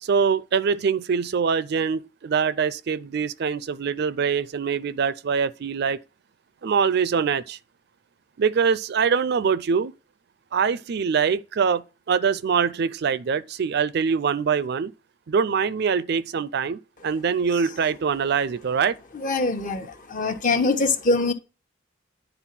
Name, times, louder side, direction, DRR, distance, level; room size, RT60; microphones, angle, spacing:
voice 1, 0.0-6.0 6.6-7.6 8.4-9.9 10.5-11.8 12.1-14.9 15.3-19.0, right 6 dB, 55° right, 0.4 m, -23 dB
voice 2, 19.1-21.3, left 3 dB, 45° left, 1.1 m, -23 dB
9.9 x 3.9 x 5.8 m
head